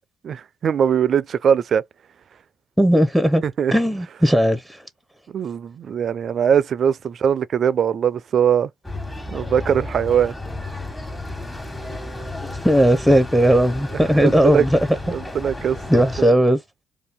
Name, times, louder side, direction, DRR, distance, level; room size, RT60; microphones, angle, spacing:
voice 1, 0.2-1.8 3.4-3.7 5.3-8.7 9.3-10.3 14.1-14.7 15.1-16.0, right 8 dB, 60° right, 0.3 m, -21 dB
voice 2, 2.8-3.4 3.7-4.8 12.6-14.8 15.9-16.6, equal, ahead, 0.7 m, -17 dB
sound 1, 8.8-16.3, left 2 dB, 20° left, 1.3 m, -32 dB
2.7 x 2.3 x 3.6 m
supercardioid pair, 55°, 0 cm